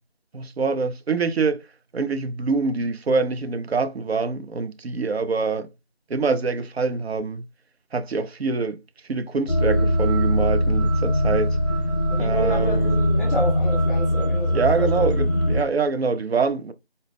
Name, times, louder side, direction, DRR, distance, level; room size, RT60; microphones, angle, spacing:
voice 1, 0.3-1.7 1.9-5.7 6.1-7.4 7.9-11.6 12.2-13.0 14.5-16.7, right 4 dB, 90° right, 0.5 m, -25 dB
sound 1, 9.5-15.6, equal, 40° left, 0.5 m, -21 dB
voice 2, 12.1-15.1, equal, ahead, 0.6 m, -30 dB
4.0 x 2.0 x 3.4 m
figure-of-eight pair, 170°, 30 cm